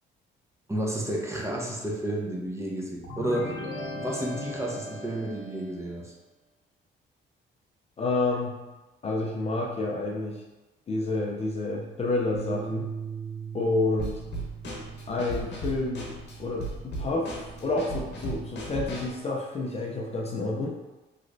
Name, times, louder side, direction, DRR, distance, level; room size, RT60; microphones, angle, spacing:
voice 1, 0.7-3.6 4.0-6.1, right 1 dB, 15° right, -2 dB, 0.7 m, -31 dB
sound 1, 3.0-5.8, left 1 dB, 85° left, 0.7 m, -38 dB
voice 2, 8.0-8.6 9.0-10.4 10.9-12.9 13.5-14.2 15.1-16.1 16.4-20.7, left 2 dB, 30° left, -1 dB, 0.5 m, -29 dB
Bass guitar, 12.3-18.6, right 7 dB, 75° right, 0.6 m, -41 dB
Drum kit / Snare drum, 14.0-19.2, right 1 dB, 60° left, 0.9 m, -37 dB
3.2 x 3.0 x 2.6 m, 1.1 s
cardioid pair, 90°, 20 cm